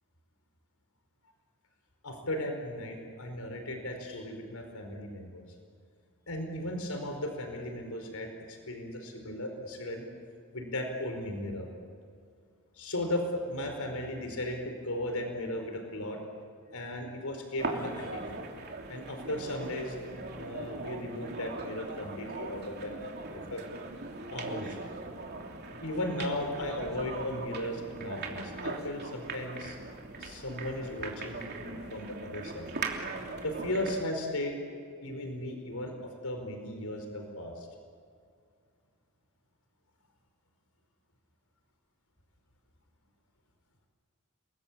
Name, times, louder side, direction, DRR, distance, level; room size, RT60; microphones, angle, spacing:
voice 1, 2.0-5.4 6.3-10.0 10.5-11.7 12.8-16.2 16.7-18.2 18.9-23.0 23.3-23.6 24.3-24.8 25.8-29.8 30.2-32.7 33.4-34.6 35.0-35.9 36.2-37.7, left 1 dB, 90° left, 4 dB, 4.7 m, -36 dB
sound 1, 17.6-34.1, right 3 dB, 50° right, 3.1 m, -40 dB
30.0 x 21.5 x 8.7 m, 2.2 s
head